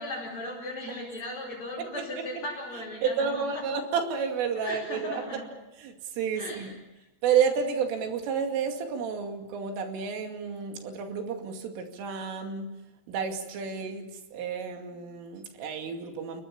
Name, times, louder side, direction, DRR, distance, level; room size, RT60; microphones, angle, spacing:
voice 1, 0.0-3.6 4.5-5.5 6.3-6.8, left 1 dB, 30° left, -5 dB, 5.5 m, -37 dB
voice 2, 3.0-5.2 5.8-6.7 7.2-12.7 13.1-16.4, right 6 dB, 85° right, 4 dB, 5.0 m, -30 dB
29.0 x 22.0 x 7.2 m, 0.98 s
omnidirectional pair, 5.6 m